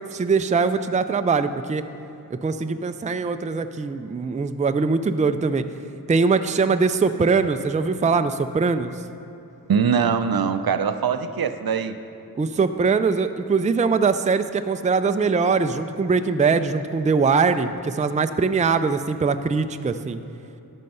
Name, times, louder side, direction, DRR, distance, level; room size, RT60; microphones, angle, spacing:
voice 1, 0.0-1.9 2.3-5.6 6.1-8.9 12.3-20.2, right 4 dB, 20° right, 9 dB, 0.4 m, -22 dB
voice 2, 9.7-12.0, right 6 dB, 70° right, 10 dB, 0.5 m, -22 dB
12.0 x 6.4 x 5.5 m, 3.0 s
wide cardioid pair, 60°, 37 cm